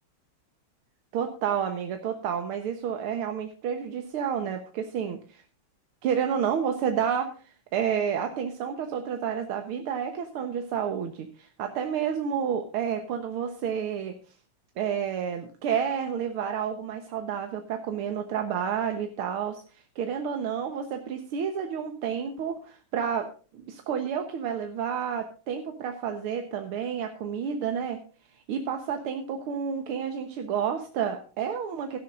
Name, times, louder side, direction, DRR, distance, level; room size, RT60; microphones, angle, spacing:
voice 1, 1.1-5.4 6.0-14.2 14.8-23.3 23.5-28.0 28.5-32.0, right 7 dB, 85° right, 6 dB, 2.0 m, -30 dB
16.0 x 13.0 x 2.5 m, 0.39 s
omnidirectional pair, 2.3 m